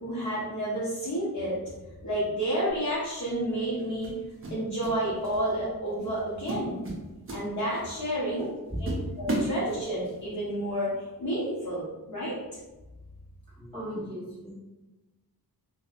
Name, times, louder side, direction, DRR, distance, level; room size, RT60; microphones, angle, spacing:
voice 1, 0.0-1.6 2.0-4.2 4.5-6.9 7.3-8.5 8.8-8.9 9.2-10.9 11.2-11.8 12.1-12.3, right 1 dB, 50° left, -8 dB, 0.7 m, -30 dB
sound 1, 2.7-2.9 4.0-5.0 5.2-5.5 6.0-6.2 6.5-8.0 8.4-8.5 8.9-10.2, right 2 dB, 35° right, 0.5 m, -34 dB
voice 2, 8.4-9.0 13.5-14.5, equal, 15° left, -11 dB, 1.3 m, -36 dB
2.6 x 2.0 x 2.4 m, 1.1 s
wide cardioid pair, 175°, 38 cm